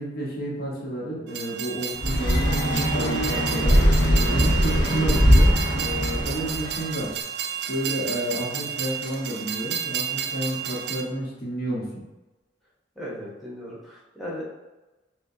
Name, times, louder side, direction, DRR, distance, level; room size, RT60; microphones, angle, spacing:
voice 1, 0.0-3.8 4.3-7.1 7.7-12.0, right 1 dB, 55° left, -4 dB, 1.1 m, -31 dB
Train, 1.3-11.0, right 9 dB, 60° right, 0.4 m, -31 dB
sound 1, 2.0-6.9, equal, 80° left, 0.9 m, -21 dB
voice 2, 12.9-14.4, equal, ahead, -6 dB, 0.9 m, -36 dB
6.3 x 2.2 x 2.7 m, 1.1 s
head